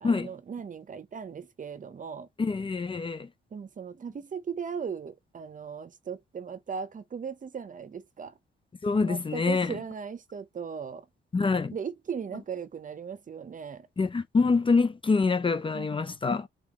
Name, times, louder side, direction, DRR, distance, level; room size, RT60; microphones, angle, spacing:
voice 1, 0.0-2.3 3.5-8.3 9.0-11.1 11.7-13.9 15.7-15.9, right 6 dB, 40° right, 0.7 m, -38 dB
voice 2, 2.4-3.3 8.8-9.8 11.3-11.7 14.0-16.5, left 4 dB, 25° left, 0.5 m, -25 dB
3.6 x 3.4 x 3.7 m
cardioid pair, 105°, 20 cm